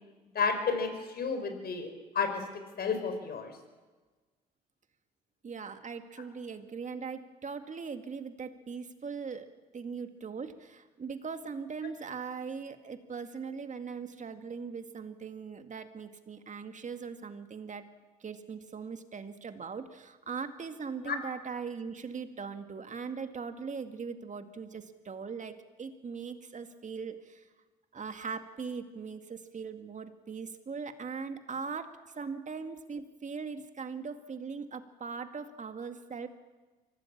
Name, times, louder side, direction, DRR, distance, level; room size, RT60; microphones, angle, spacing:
voice 1, 0.3-2.4 2.8-3.6 21.0-21.2, left 5 dB, 50° left, 8 dB, 4.8 m, -31 dB
voice 2, 5.4-17.9 18.2-27.4 27.9-36.3, right 5 dB, 40° right, 8 dB, 2.1 m, -40 dB
24.5 x 17.5 x 7.4 m, 1.3 s
hypercardioid pair, 55°, 20 cm